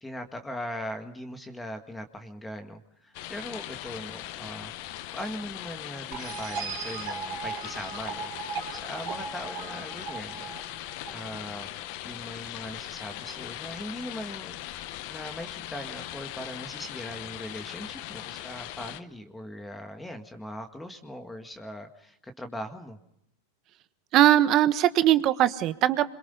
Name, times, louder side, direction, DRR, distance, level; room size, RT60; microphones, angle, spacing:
voice 1, 0.0-4.7 5.1-11.7 12.0-23.0, equal, 10° left, 6 dB, 1.9 m, -40 dB
sound 1, 3.1-19.0, left 14 dB, 55° left, 1.0 m, -39 dB
sound 2, 6.1-11.6, right 6 dB, 60° right, 3.7 m, -37 dB
voice 2, 24.1-26.1, right 13 dB, 45° right, 12 dB, 1.3 m, -20 dB
27.0 x 22.5 x 5.6 m, 0.75 s
hypercardioid pair, 110°, 0 cm